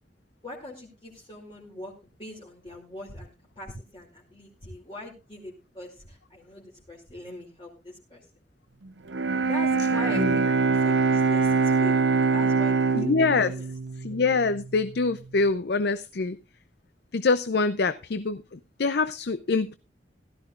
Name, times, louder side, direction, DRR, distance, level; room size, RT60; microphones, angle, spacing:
voice 1, 0.4-8.2 9.4-12.0 12.3-13.6, left 1 dB, 30° left, -3 dB, 2.5 m, -42 dB
Bowed string instrument, 9.1-15.1, right 4 dB, 90° right, 0.8 m, -24 dB
voice 2, 12.9-13.5 14.0-16.4 17.1-19.8, left 4 dB, 65° left, 13 dB, 0.6 m, -25 dB
16.0 x 13.0 x 2.4 m, 0.27 s
head